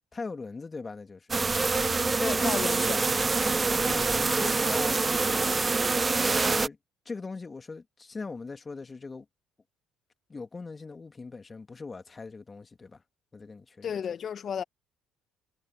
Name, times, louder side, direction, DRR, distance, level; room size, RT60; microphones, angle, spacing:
voice 1, 0.1-1.4 3.9-5.0 5.3-5.7 6.3-6.8 7.1-9.3 10.3-13.0 13.3-13.9, left 4 dB, 30° left, 2.5 m, -40 dB
sound 1, 1.3-6.7, right 3 dB, 25° right, 0.8 m, -25 dB
voice 2, 2.2-3.1 13.8-14.6, left 8 dB, 50° left, 1.4 m, -33 dB
hypercardioid pair, 65°, 0 cm